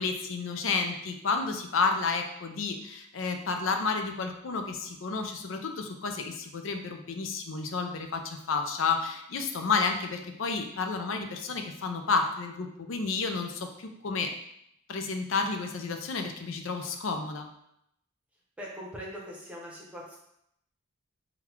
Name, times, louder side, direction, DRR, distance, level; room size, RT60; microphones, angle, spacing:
voice 1, 0.0-14.3 14.9-17.5, left 4 dB, 65° left, 5 dB, 0.5 m, -31 dB
voice 2, 18.6-20.2, equal, 5° right, -4 dB, 0.9 m, -41 dB
3.8 x 2.3 x 4.4 m, 0.76 s
head